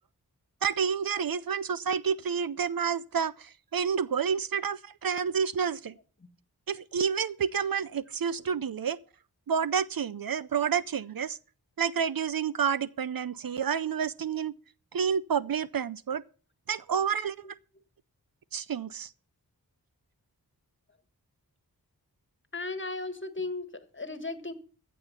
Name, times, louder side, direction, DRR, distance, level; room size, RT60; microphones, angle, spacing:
voice 1, 0.6-5.9 6.7-9.0 9.5-11.4 11.8-14.5 14.9-16.2 16.7-17.5 18.5-19.1, right 7 dB, 65° right, 0.5 m, -29 dB
voice 2, 22.5-24.5, left 3 dB, 30° left, 1.7 m, -36 dB
14.5 x 7.2 x 5.7 m
wide cardioid pair, 45°, 38 cm